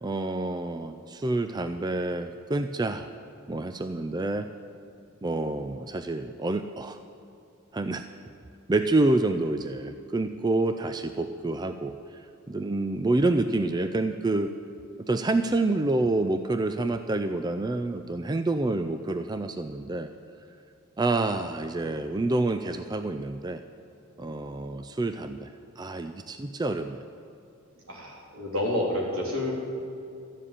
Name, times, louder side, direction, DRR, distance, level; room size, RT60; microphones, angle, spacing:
voice 1, 0.0-3.1 3.5-4.5 5.2-7.0 7.7-8.1 8.7-14.5 15.0-20.1 21.0-23.6 24.2-27.0, right 2 dB, 20° right, 8 dB, 0.3 m, -28 dB
voice 2, 27.9-29.5, left 1 dB, 80° right, -2 dB, 3.4 m, -29 dB
13.0 x 7.4 x 9.9 m, 2.5 s
head